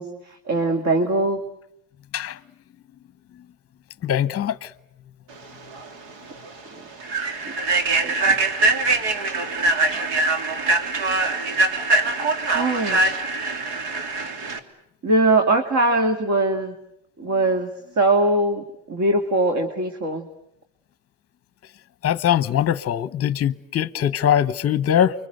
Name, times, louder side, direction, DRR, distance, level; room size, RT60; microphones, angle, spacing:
voice 1, 0.0-1.4 8.0-8.1 12.5-13.0 15.0-16.8 17.2-17.7 18.0-20.3, right 2 dB, 40° right, 2.4 m, -21 dB
voice 2, 4.0-4.7 22.0-25.1, left 10 dB, 30° left, 1.0 m, -21 dB
Human voice / Train, 5.7-5.9 6.3-6.5 7.0-14.6, right 3 dB, 65° right, 3.0 m, -22 dB
29.5 x 24.5 x 7.9 m
cardioid pair, 120°, 45 cm